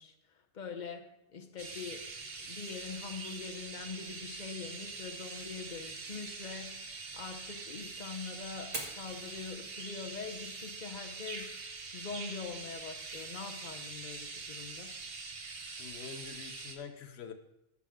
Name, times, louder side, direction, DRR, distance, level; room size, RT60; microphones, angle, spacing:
voice 1, 0.0-2.1 2.4-6.9 7.1-15.0, left 5 dB, 50° left, 4 dB, 1.0 m, -44 dB
sound 1, 1.6-16.8, right 4 dB, 70° right, 1.3 m, -44 dB
Fire, 8.6-16.6, right 2 dB, 40° right, 1.5 m, -51 dB
voice 2, 15.7-17.3, left 6 dB, 90° left, 8 dB, 1.0 m, -46 dB
14.0 x 5.9 x 3.7 m, 0.91 s
omnidirectional pair, 1.1 m